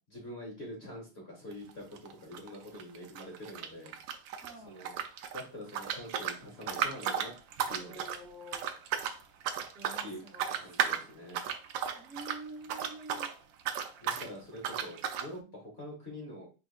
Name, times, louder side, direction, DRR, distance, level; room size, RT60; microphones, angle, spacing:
voice 1, 0.1-3.9 4.6-4.9 5.3-7.3 7.7-8.1 10.0-10.2 10.6-11.4 14.0-16.5, left 1 dB, 35° left, -1 dB, 1.3 m, -45 dB
sound 1, 1.5-1.7 2.0-4.5 4.8-13.3 13.6-14.3 14.6-15.3, right 8 dB, 75° right, 1.3 m, -35 dB
voice 2, 2.1-2.4 4.3-4.8 7.7-8.9 9.7-11.0 11.9-13.3 15.4-15.7, right 1 dB, 40° right, -4 dB, 1.2 m, -49 dB
4.9 x 3.5 x 2.4 m, 0.32 s
omnidirectional pair, 2.1 m